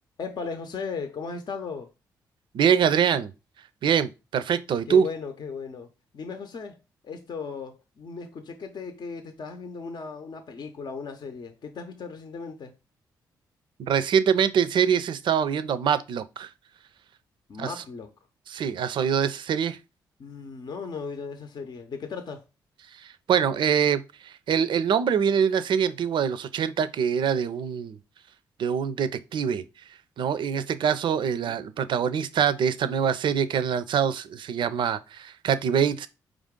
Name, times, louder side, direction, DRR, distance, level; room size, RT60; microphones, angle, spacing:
voice 1, 0.2-1.9 4.9-5.9 6.1-6.8 7.0-12.7 17.5-18.1 20.2-22.4 31.4-31.6, left 5 dB, 50° left, 0.7 m, -36 dB
voice 2, 2.5-3.3 3.8-5.1 13.8-16.5 17.6-17.7 18.5-19.8 22.9-28.0 28.6-29.6 30.2-36.1, right 7 dB, 60° right, 0.4 m, -24 dB
4.9 x 2.5 x 3.6 m
hypercardioid pair, 40°, 9 cm